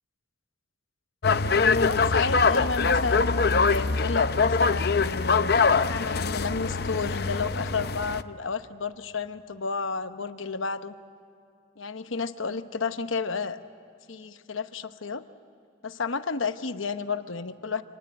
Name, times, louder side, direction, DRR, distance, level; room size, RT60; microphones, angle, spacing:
sound 1, 1.2-8.2, left 4 dB, 50° left, 0.6 m, -23 dB
voice 1, 1.6-10.9 11.8-13.6 14.1-15.2 15.8-17.8, left 4 dB, 85° left, 10 dB, 1.0 m, -31 dB
26.5 x 20.0 x 9.0 m, 2.5 s
head